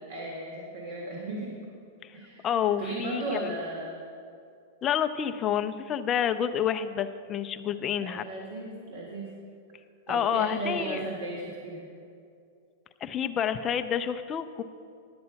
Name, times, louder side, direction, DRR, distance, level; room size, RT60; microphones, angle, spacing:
voice 1, 0.1-1.5 2.1-2.5 2.8-4.0 7.7-9.3 10.1-11.9, right 2 dB, 55° right, -3 dB, 1.7 m, -36 dB
voice 2, 2.4-3.5 4.8-8.3 10.1-11.0 13.0-14.6, left 9 dB, 15° left, 9 dB, 0.3 m, -29 dB
11.0 x 7.7 x 5.6 m, 2.4 s
supercardioid pair, 180°, 0 cm